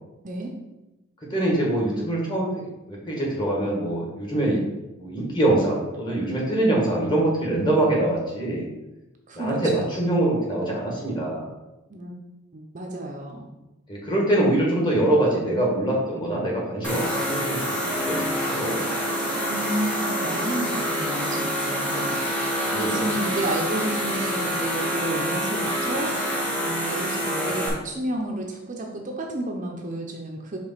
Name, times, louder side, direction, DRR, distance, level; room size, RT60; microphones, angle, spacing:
voice 1, 1.3-2.5 2.9-4.6 5.0-8.7 9.3-11.5 13.9-17.6 17.8-18.2 18.5-18.8 22.7-23.2, right 1 dB, 20° left, -3 dB, 1.6 m, -24 dB
voice 2, 9.3-9.9 11.9-12.1 12.5-13.5 19.4-30.6, right 1 dB, 35° right, 1 dB, 0.6 m, -31 dB
sound 1, 16.8-27.7, equal, 5° left, 1.1 m, -27 dB
4.9 x 3.6 x 5.6 m, 1.0 s
head